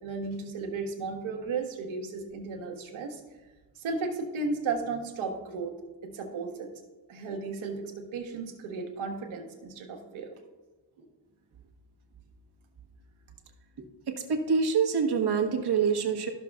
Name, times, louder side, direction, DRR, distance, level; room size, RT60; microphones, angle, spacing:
voice 1, 0.0-3.2 3.8-5.7 6.0-6.7 7.1-10.3 11.0-11.1, right 4 dB, 85° right, 2 dB, 1.4 m, -34 dB
voice 2, 13.8-16.3, right 6 dB, 55° right, 4 dB, 1.2 m, -26 dB
13.0 x 6.3 x 2.3 m, 1.2 s
cardioid pair, 95°, 47 cm